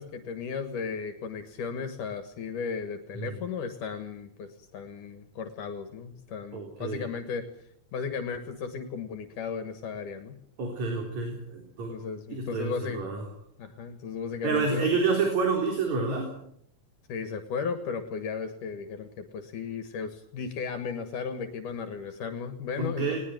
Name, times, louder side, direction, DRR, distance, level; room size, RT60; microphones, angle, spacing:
voice 1, 0.0-10.4 11.9-13.0 13.6-14.8 17.1-23.2, left 6 dB, 75° left, 8 dB, 3.1 m, -35 dB
voice 2, 6.5-7.0 10.6-11.9 12.3-13.2 14.4-16.3 22.8-23.2, right 4 dB, 60° right, 2 dB, 5.1 m, -28 dB
20.5 x 19.5 x 9.3 m, 0.71 s
omnidirectional pair, 3.7 m